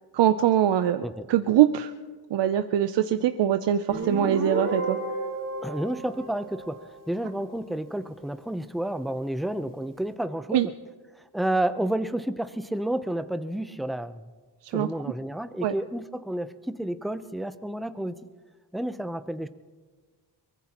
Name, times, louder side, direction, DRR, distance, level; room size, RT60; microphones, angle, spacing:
voice 1, 0.1-1.9 2.3-5.0 10.5-10.7 14.7-14.9 15.6-15.7, right 11 dB, 75° right, 10 dB, 0.6 m, -23 dB
Guitar, 3.9-7.4, right 3 dB, 45° right, 3.6 m, -32 dB
voice 2, 5.6-6.8 7.1-10.7 11.3-14.2 14.7-18.2 18.7-19.5, right 1 dB, ahead, 11 dB, 0.6 m, -30 dB
23.0 x 20.5 x 2.9 m, 1.4 s
cardioid pair, 80°, 42 cm